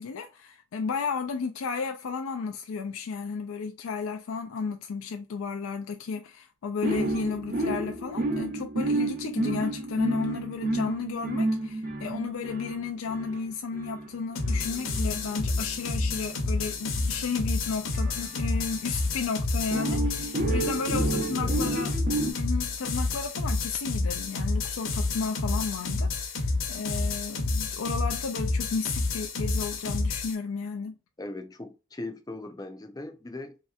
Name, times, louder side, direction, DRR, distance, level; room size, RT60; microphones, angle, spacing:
voice 1, 0.0-21.9 22.2-30.9, left 5 dB, 90° left, 0.4 m, -33 dB
sound 1, 6.8-19.0 19.7-22.3, right 2 dB, 40° right, 0.7 m, -31 dB
sound 2, 14.4-30.4, left 3 dB, 65° left, 0.9 m, -29 dB
voice 2, 20.5-21.6 31.2-33.6, left 2 dB, 20° left, 0.5 m, -39 dB
3.1 x 2.8 x 2.3 m
head